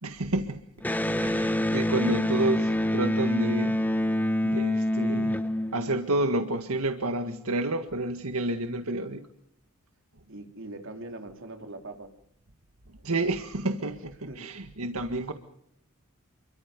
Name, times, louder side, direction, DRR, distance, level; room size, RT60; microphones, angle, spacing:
voice 1, 0.0-0.6 1.2-3.8 4.4-5.4 5.7-9.2 13.0-15.3, right 2 dB, 85° right, 6 dB, 1.8 m, -29 dB
Electric guitar, 0.8-6.3, left 1 dB, 10° left, 1.3 m, -26 dB
voice 2, 10.3-12.1 14.3-14.5, right 2 dB, 60° right, 5 dB, 3.5 m, -41 dB
29.5 x 23.5 x 5.3 m, 0.72 s
head